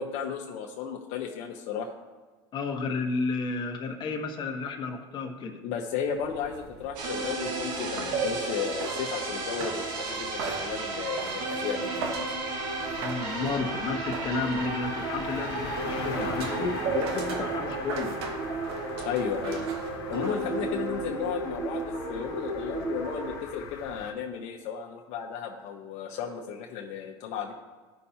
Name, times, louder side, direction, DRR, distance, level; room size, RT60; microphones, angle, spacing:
voice 1, 0.0-1.9 5.6-12.2 19.0-19.6 20.1-27.5, left 7 dB, 60° left, 1 dB, 0.9 m, -34 dB
voice 2, 2.5-5.6 13.0-18.2, left 4 dB, 35° left, 3 dB, 1.2 m, -32 dB
sound 1, 6.0-20.9, right 5 dB, 85° right, 1.2 m, -42 dB
sound 2, 7.0-23.4, right 3 dB, 65° right, 2.0 m, -33 dB
sound 3, 12.8-24.1, left 5 dB, 85° left, 1.1 m, -41 dB
14.5 x 5.7 x 2.8 m, 1.4 s
supercardioid pair, 115°, 13 cm